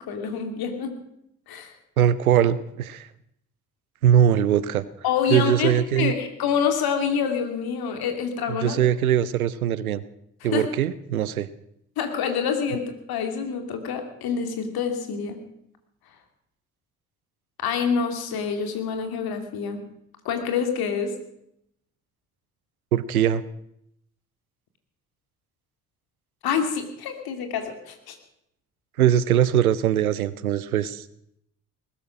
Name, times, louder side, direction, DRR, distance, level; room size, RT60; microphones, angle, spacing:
voice 1, 0.1-1.0 1.5-1.7 5.0-8.8 10.5-10.7 12.0-15.4 17.6-19.8 20.2-21.1 26.4-28.2, left 6 dB, 60° left, 6 dB, 2.6 m, -27 dB
voice 2, 2.0-3.1 4.0-4.9 5.3-6.1 8.5-10.0 10.4-11.5 22.9-23.4 29.0-31.0, right 10 dB, 85° right, 18 dB, 0.6 m, -21 dB
20.0 x 12.0 x 6.0 m, 0.76 s
figure-of-eight pair, 45°, 42 cm